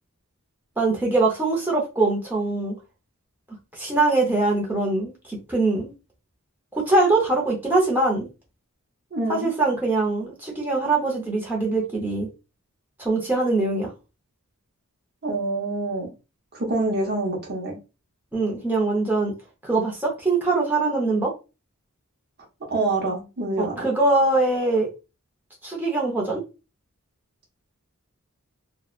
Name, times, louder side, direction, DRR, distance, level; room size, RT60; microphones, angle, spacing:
voice 1, 0.8-2.7 3.7-5.9 6.7-8.3 9.3-12.3 13.0-13.9 18.3-19.3 19.6-21.3 23.6-24.9 25.6-26.4, right 2 dB, 10° right, 0.6 m, -22 dB
voice 2, 9.1-9.5 15.2-16.1 16.5-17.8 22.7-23.9, right 2 dB, 45° right, 0.8 m, -26 dB
2.7 x 2.1 x 2.4 m
head